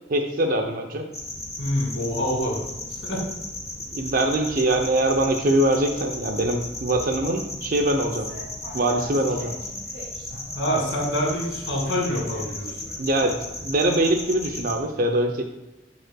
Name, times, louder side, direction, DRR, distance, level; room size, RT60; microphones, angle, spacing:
voice 1, 0.1-1.0 3.9-8.3 8.7-9.5 13.0-13.4 13.6-15.4, right 1 dB, 50° right, 3 dB, 0.6 m, -23 dB
sound 1, 1.1-14.8, left 2 dB, 15° left, 1.0 m, -35 dB
voice 2, 1.6-2.6 2.9-3.2 10.5-12.8, equal, 75° left, -2 dB, 2.3 m, -26 dB
sound 2, 8.1-13.7, right 1 dB, 75° right, 2.4 m, -44 dB
12.0 x 5.4 x 2.2 m, 0.99 s
head